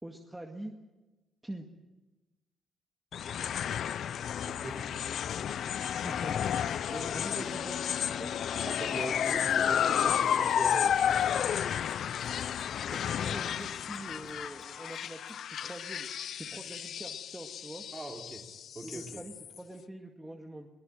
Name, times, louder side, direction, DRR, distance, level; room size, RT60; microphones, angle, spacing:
voice 1, 0.0-0.7 1.4-1.7 6.0-6.5 6.9-8.3 12.9-16.1 16.3-17.8 18.8-20.7, right 1 dB, 10° right, 2 dB, 2.1 m, -44 dB
sound 1, 3.1-19.6, left 9 dB, 65° left, 0.7 m, -32 dB
voice 2, 4.4-4.9 7.4-7.6 8.6-11.3 17.9-18.5 18.8-19.2, right 2 dB, 25° right, 2 dB, 3.7 m, -41 dB
Mechanisms, 6.9-7.0 10.0-15.6, left 6 dB, 45° left, 2.8 m, -59 dB
22.0 x 19.0 x 9.0 m, 1.1 s
cardioid pair, 90°, 0 cm